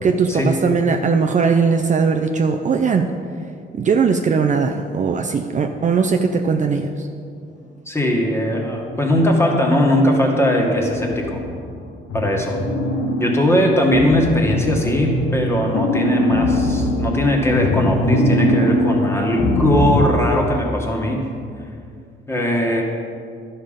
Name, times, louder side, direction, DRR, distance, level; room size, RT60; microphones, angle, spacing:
voice 1, 0.0-3.1 3.7-7.1, right 5 dB, 40° right, 4 dB, 0.5 m, -19 dB
voice 2, 7.8-11.5 12.1-12.6 13.2-21.2 22.3-22.8, left 1 dB, 10° left, 0 dB, 1.7 m, -19 dB
sound 1, 9.1-9.7 10.3-11.8 12.1-20.0, left 1 dB, 85° left, 1.2 m, -22 dB
11.5 x 5.6 x 5.1 m, 2.4 s
cardioid pair, 90°, 20 cm